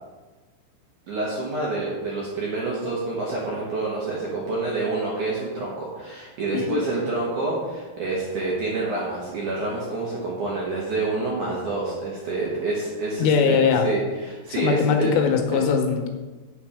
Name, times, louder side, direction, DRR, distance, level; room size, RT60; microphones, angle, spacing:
voice 1, 1.1-15.1 15.5-15.6, right 3 dB, 75° right, -5 dB, 1.8 m, -28 dB
voice 2, 13.2-13.9 14.5-16.1, left 6 dB, 80° left, 4 dB, 3.6 m, -21 dB
9.2 x 7.4 x 4.9 m, 1.3 s
omnidirectional pair, 5.9 m